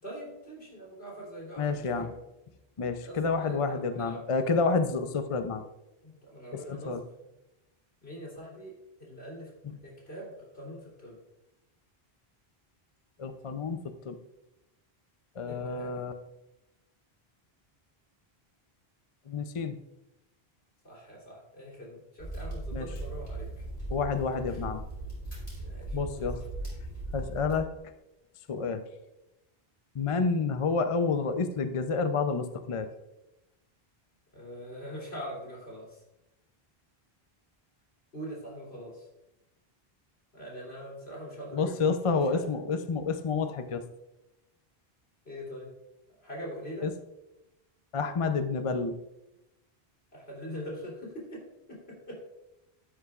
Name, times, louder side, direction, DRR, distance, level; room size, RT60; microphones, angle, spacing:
voice 1, 0.0-2.2 3.0-4.3 6.0-7.3 8.0-9.5 9.8-11.2 15.5-16.1 20.8-23.7 24.5-24.6 25.6-26.5 34.3-36.0 38.1-39.1 40.3-42.6 45.3-45.7 46.2-46.9 50.1-52.2, equal, 85° left, -4 dB, 3.6 m, -43 dB
voice 2, 1.6-2.1 2.8-5.6 6.7-7.0 13.2-14.2 15.4-16.1 19.3-19.8 22.7-22.9 23.9-24.8 25.9-26.4 27.1-27.7 28.5-28.8 29.9-32.9 41.5-43.8 46.8-46.9 47.9-49.0, left 4 dB, 40° left, 8 dB, 0.6 m, -29 dB
sound 1, 22.2-27.6, right 1 dB, 55° left, 4.4 m, -38 dB
12.5 x 9.8 x 2.4 m, 0.93 s
omnidirectional pair, 1.0 m